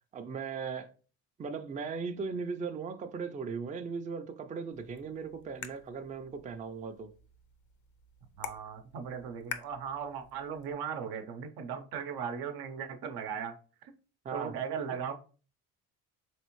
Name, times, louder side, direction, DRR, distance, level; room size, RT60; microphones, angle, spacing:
voice 1, 0.1-0.9 1.4-7.1 14.2-14.5, right 5 dB, 20° right, 0.4 m, -38 dB
sound 1, 4.7-10.7, left 7 dB, 50° left, 0.5 m, -48 dB
voice 2, 8.4-13.5 13.8-13.9 14.3-15.1, right 7 dB, 80° right, 0.7 m, -37 dB
3.4 x 3.2 x 3.0 m
cardioid pair, 90°, 37 cm